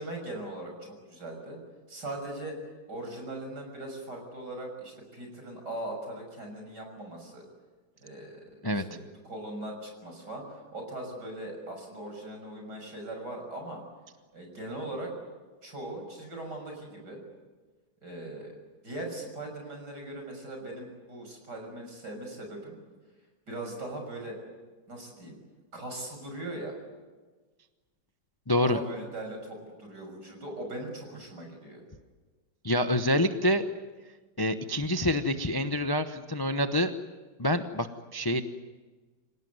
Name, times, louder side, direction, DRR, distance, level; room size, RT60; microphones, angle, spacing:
voice 1, 0.0-1.6 1.9-2.6 2.9-7.4 8.0-9.0 9.2-13.8 14.3-15.1 15.6-17.2 18.0-18.6 18.8-22.8 23.5-24.4 24.9-25.4 25.7-26.8 28.6-31.8, right 1 dB, 60° right, 3 dB, 7.0 m, -40 dB
voice 2, 28.5-28.8 32.6-33.6 34.4-36.9 37.4-37.9 38.1-38.4, left 1 dB, 25° left, 8 dB, 0.5 m, -26 dB
26.5 x 18.0 x 9.5 m, 1.3 s
omnidirectional pair, 2.1 m